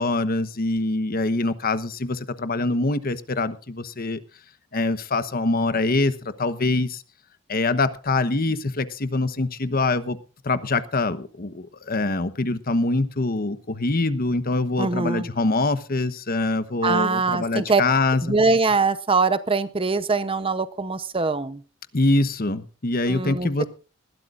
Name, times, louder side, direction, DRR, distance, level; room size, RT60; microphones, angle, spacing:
voice 1, 0.0-4.2 4.7-6.1 6.4-7.0 7.5-10.2 10.5-18.4 21.9-23.6, left 2 dB, 45° left, 12 dB, 1.1 m, -24 dB
voice 2, 14.8-15.3 16.8-17.8 18.2-21.6 23.1-23.6, right 4 dB, 25° right, 13 dB, 0.8 m, -23 dB
20.5 x 15.5 x 2.5 m, 0.35 s
head